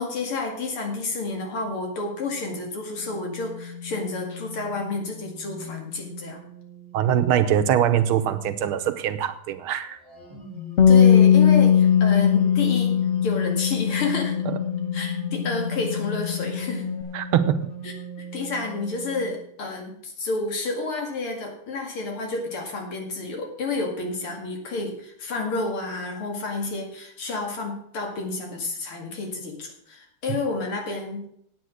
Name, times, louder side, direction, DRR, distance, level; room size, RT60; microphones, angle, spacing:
voice 1, 0.0-6.4 10.9-13.0 13.2-14.4 14.9-16.9 17.8-31.3, left 3 dB, 85° left, 2 dB, 3.0 m, -30 dB
sound 1, 1.3-7.4 10.0-19.3, left 4 dB, 25° left, 2.8 m, -38 dB
voice 2, 6.9-10.0 14.5-14.6 17.1-17.6, right 10 dB, 85° right, 9 dB, 1.8 m, -22 dB
Bass guitar, 10.8-17.0, left 8 dB, 60° left, 0.7 m, -20 dB
9.3 x 8.9 x 6.3 m, 0.69 s
omnidirectional pair, 2.3 m